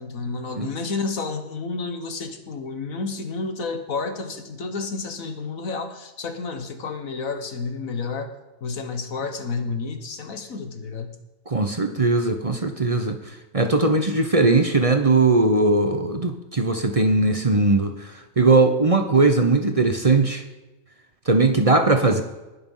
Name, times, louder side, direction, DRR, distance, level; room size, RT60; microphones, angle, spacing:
voice 1, 0.0-8.3 8.6-11.1, left 4 dB, 85° left, 7 dB, 1.8 m, -30 dB
voice 2, 11.5-13.2 13.5-20.4 21.3-22.2, right 3 dB, 30° right, 6 dB, 0.8 m, -19 dB
20.5 x 6.9 x 5.6 m, 1.1 s
omnidirectional pair, 1.4 m